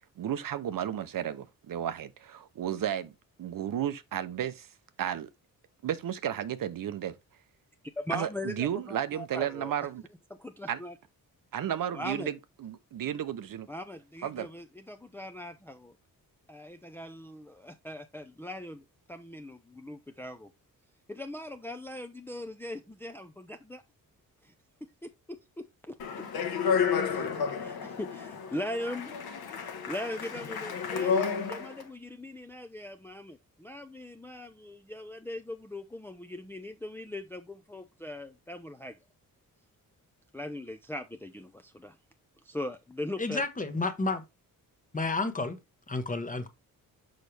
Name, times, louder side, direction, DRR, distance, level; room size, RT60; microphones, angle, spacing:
voice 1, 0.2-3.1 3.4-4.7 5.0-5.3 5.8-7.2 8.1-10.0 10.7-10.8 11.5-13.7 14.2-14.5, right 10 dB, 65° right, 0.8 m, -33 dB
voice 2, 8.0-9.7 10.3-10.9 11.9-12.3 13.7-16.0 16.5-20.5 21.1-23.8 24.4-24.5 24.8-26.3 27.1-27.3 27.6-29.2 29.5-29.6 29.9-39.0 40.3-42.0 42.4-43.4, left 1 dB, 5° left, 0.6 m, -40 dB
Speech, 26.0-31.8, left 6 dB, 90° left, 1.3 m, -31 dB
voice 3, 43.2-44.2 44.9-45.6 45.9-46.5, left 3 dB, 20° left, 1.1 m, -31 dB
6.5 x 5.7 x 3.3 m
cardioid pair, 120°, 36 cm